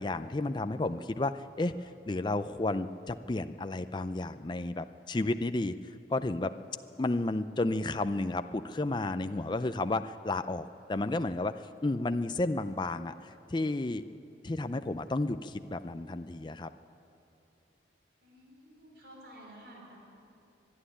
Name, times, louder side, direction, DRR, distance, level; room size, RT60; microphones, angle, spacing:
voice 1, 0.0-6.5 7.0-14.0 14.4-16.7, left 2 dB, 25° left, 10 dB, 0.4 m, -32 dB
voice 2, 18.2-20.0, right 1 dB, 65° right, -2 dB, 4.8 m, -52 dB
23.0 x 11.5 x 9.9 m, 2.8 s
head